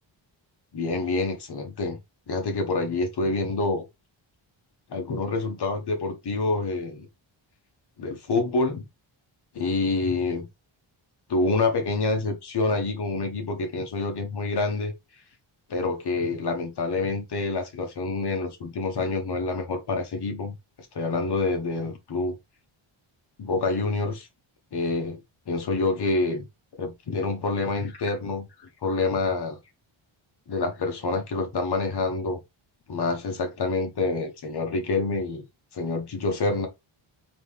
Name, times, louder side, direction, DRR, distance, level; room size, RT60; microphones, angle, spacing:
voice 1, 0.7-2.0 2.3-3.8 4.9-7.1 8.0-8.8 9.5-10.5 11.3-14.9 15.7-20.6 20.9-22.4 23.4-24.3 24.7-26.5 26.8-28.5 28.8-29.6 30.5-32.4 32.9-35.5 35.7-36.7, left 3 dB, 50° left, 1.3 m, -27 dB
4.0 x 3.2 x 3.4 m
wide cardioid pair, 140°, 49 cm